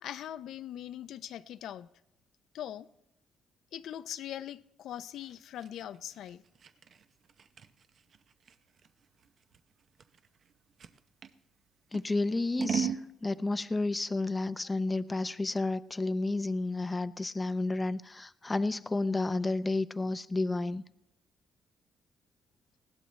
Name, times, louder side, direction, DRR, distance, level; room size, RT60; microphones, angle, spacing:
voice 1, 0.0-1.9 2.5-2.9 3.7-6.4, left 11 dB, 75° left, 0.4 m, -41 dB
Scissors, 5.2-11.4 11.9-13.1, right 8 dB, 55° right, 0.7 m, -38 dB
voice 2, 11.9-12.9 13.2-20.8, left 2 dB, 20° left, 0.5 m, -31 dB
19.5 x 16.0 x 3.2 m
cardioid pair, 90°, 0 cm